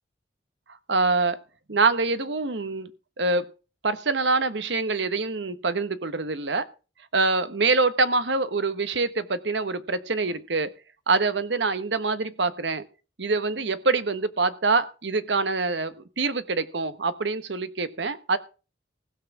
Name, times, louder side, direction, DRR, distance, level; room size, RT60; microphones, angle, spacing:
voice 1, 0.9-1.4 1.7-2.9 3.2-3.5 3.8-6.7 7.1-10.7 11.1-12.8 13.2-18.4, right 3 dB, 75° right, 13 dB, 1.1 m, -25 dB
16.0 x 5.7 x 7.2 m, 0.34 s
head